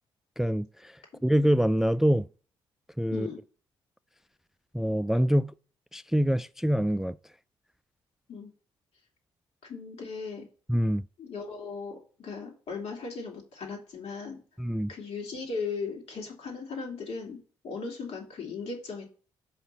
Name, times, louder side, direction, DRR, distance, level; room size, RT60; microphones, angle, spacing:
voice 1, 0.4-2.3 3.0-3.3 4.7-5.5 5.9-7.2 10.7-11.0 14.6-14.9, equal, 5° right, 0.3 m, -25 dB
voice 2, 3.1-3.4 8.3-8.5 9.6-10.5 11.2-14.4 14.9-19.1, left 4 dB, 60° left, 2.8 m, -37 dB
5.7 x 5.5 x 6.7 m
hypercardioid pair, 45°, 12 cm